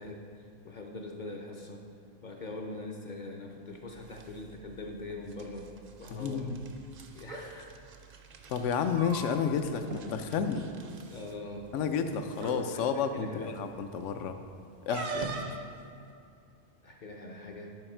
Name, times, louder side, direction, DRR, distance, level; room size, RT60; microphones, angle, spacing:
voice 1, 0.0-1.8 2.2-5.7 6.0-6.5 7.1-7.8 11.1-11.7 12.7-12.8 13.1-13.5 16.8-17.7, left 2 dB, 50° left, 2 dB, 0.6 m, -42 dB
sound 1, 3.6-16.1, right 4 dB, 55° right, 0.6 m, -52 dB
voice 2, 6.1-6.6 8.5-10.7 11.7-14.4 14.9-15.4, left 6 dB, 75° left, 8 dB, 0.9 m, -31 dB
sound 2, 7.2-7.4 8.7-9.6 9.9-10.0 10.4-10.6 11.6-11.7 12.3-12.6 14.9-15.6, right 4 dB, 80° right, 1.4 m, -38 dB
9.7 x 4.9 x 4.4 m, 2.5 s
omnidirectional pair, 1.3 m